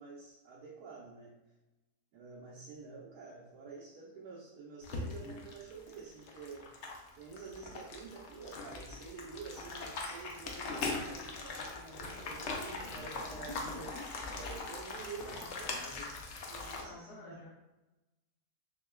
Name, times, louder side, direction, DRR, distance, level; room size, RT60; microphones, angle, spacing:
voice 1, 0.0-1.3 2.1-6.7 7.1-14.0 14.3-15.8 16.5-17.5, right 5 dB, 75° right, -6 dB, 1.3 m, -49 dB
sound 1, 4.8-16.8, left 3 dB, 65° left, 0.7 m, -41 dB
voice 2, 12.8-14.0 15.1-16.2 16.8-17.5, left 2 dB, 80° left, -4 dB, 1.3 m, -50 dB
6.5 x 2.2 x 2.2 m, 1.0 s
omnidirectional pair, 1.8 m